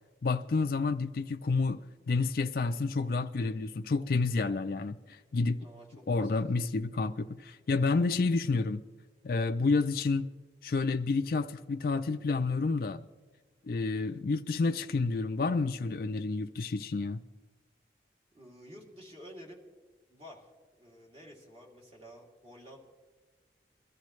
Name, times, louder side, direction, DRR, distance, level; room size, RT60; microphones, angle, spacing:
voice 1, 0.2-1.8 2.1-5.6 6.1-8.8 9.2-10.3 10.6-13.0 13.6-17.2, left 3 dB, 55° left, 0.4 m, -29 dB
voice 2, 18.3-19.6 20.1-22.8, equal, 35° right, 2.7 m, -51 dB
22.0 x 13.5 x 3.2 m
head